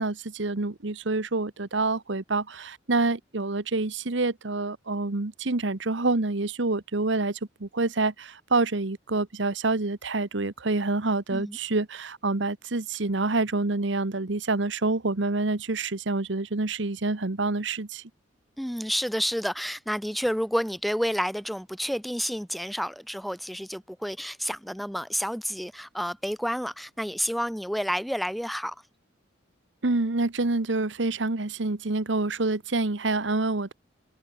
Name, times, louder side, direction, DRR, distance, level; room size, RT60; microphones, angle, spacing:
voice 1, 0.0-18.0 29.8-33.7, right 3 dB, 70° right, 1.2 m, -27 dB
voice 2, 18.6-28.8, equal, ahead, 0.9 m, -30 dB
head